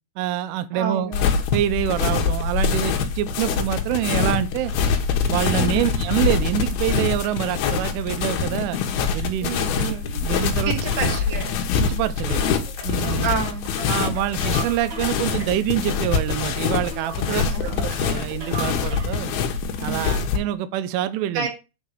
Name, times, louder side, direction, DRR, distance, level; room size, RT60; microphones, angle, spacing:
voice 1, 0.2-1.1 1.5-4.7 5.3-8.8 9.1-10.7 11.0-11.1 11.8-12.5 12.8-13.3 13.9-19.4 19.8-21.5, right 12 dB, 85° right, 3.1 m, -26 dB
voice 2, 0.7-1.3 5.5-5.9 9.4-10.0 10.6-11.6 13.2-13.7 17.3-17.8 19.8-20.3 21.3-21.5, right 6 dB, 45° right, 1.5 m, -29 dB
sound 1, 1.1-20.4, left 6 dB, 70° left, 2.6 m, -24 dB
sound 2, 10.9-19.3, right 3 dB, 70° right, 1.3 m, -39 dB
8.5 x 4.1 x 6.6 m
omnidirectional pair, 5.6 m